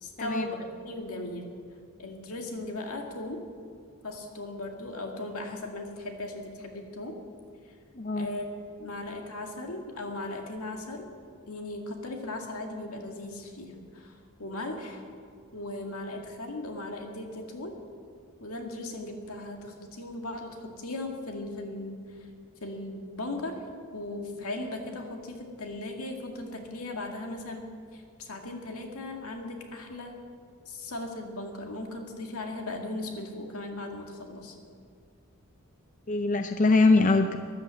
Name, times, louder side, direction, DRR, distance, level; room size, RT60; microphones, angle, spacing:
voice 1, 0.0-1.5 2.0-3.5 4.0-7.2 7.7-7.8 8.2-8.5 8.8-11.1 11.5-15.0 15.5-17.8 18.4-22.3 22.6-23.6 23.9-27.7 27.9-30.2 30.7-34.6, left 2 dB, 75° left, 3 dB, 2.1 m, -37 dB
voice 2, 8.0-8.3 36.1-37.4, left 3 dB, 35° left, 7 dB, 0.5 m, -22 dB
13.5 x 11.5 x 7.7 m, 2.2 s
head